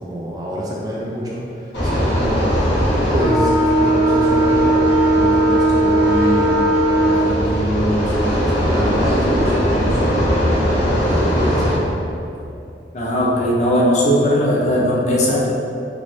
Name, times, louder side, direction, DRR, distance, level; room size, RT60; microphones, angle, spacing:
voice 1, 0.0-2.6 3.0-3.5 3.8-6.5 7.0-10.4 10.9-12.0, equal, 20° right, -5 dB, 0.4 m, -26 dB
sound 1, 1.7-11.7, right 1 dB, 85° left, 0.9 m, -17 dB
voice 2, 12.9-15.4, equal, 40° left, -4 dB, 0.5 m, -17 dB
3.4 x 3.2 x 2.6 m, 2.6 s
head